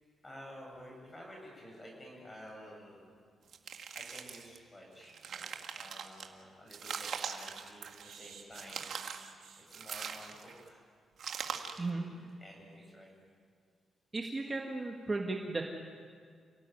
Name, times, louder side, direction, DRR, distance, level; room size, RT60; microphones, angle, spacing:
voice 1, 0.2-3.1 3.9-8.9 9.6-10.8 11.5-13.1, equal, 15° left, 0 dB, 7.6 m, -52 dB
sound 1, 3.5-4.6 5.0-6.3 6.7-8.2 8.5-9.3 9.7-10.6 11.2-11.9, right 7 dB, 60° right, 1.8 m, -41 dB
sound 2, 5.7-5.8 6.2-6.3 6.7-6.9 8.0-9.6 10.2-10.4 10.7-10.8 11.1-11.2, right 7 dB, 80° right, 4.8 m, -54 dB
voice 2, 14.1-15.6, right 3 dB, 20° right, 1 dB, 1.8 m, -35 dB
29.0 x 18.5 x 9.4 m, 2.1 s
wide cardioid pair, 150°, 0 cm